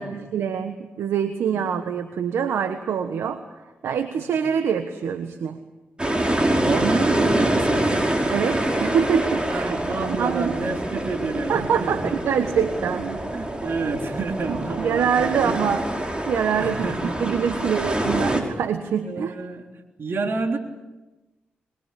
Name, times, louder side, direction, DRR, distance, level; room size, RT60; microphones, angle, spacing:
voice 1, 0.0-3.4 3.8-5.6 8.2-9.8 10.1-10.5 11.5-13.2 13.6-13.7 14.5-15.9 16.2-16.9 17.2-19.3, right 7 dB, 80° right, 9 dB, 1.3 m, -25 dB
sound 1, 6.0-18.4, right 1 dB, 25° right, 5.6 m, -25 dB
voice 2, 6.6-7.9 9.3-12.1 13.3-15.5 16.6-17.2 17.5-17.6 19.0-19.7 20.0-20.6, right 4 dB, 60° right, 4 dB, 3.7 m, -29 dB
23.0 x 21.5 x 8.4 m, 1.1 s
supercardioid pair, 40°, 4 cm